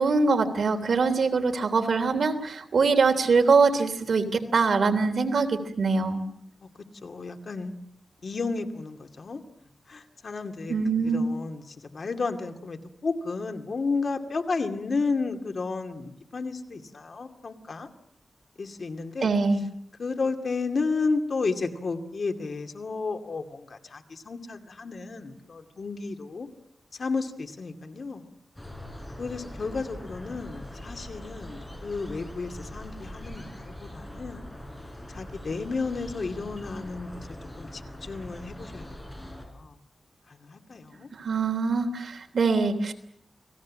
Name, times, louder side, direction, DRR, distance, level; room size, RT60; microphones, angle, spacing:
voice 1, 0.0-6.2 10.7-11.3 19.2-19.6 41.2-42.9, right 4 dB, 70° right, 6 dB, 3.3 m, -23 dB
voice 2, 7.0-7.7 8.2-9.4 9.9-17.9 18.6-19.3 20.0-26.5 26.9-28.3 29.2-34.5 35.1-37.3 37.6-39.0 39.5-39.8 40.3-41.1, left 4 dB, 55° left, 5 dB, 2.4 m, -32 dB
sound 1, 28.6-39.5, left 1 dB, 10° left, 6.1 m, -42 dB
30.0 x 20.5 x 7.5 m, 0.72 s
wide cardioid pair, 130°, 0 cm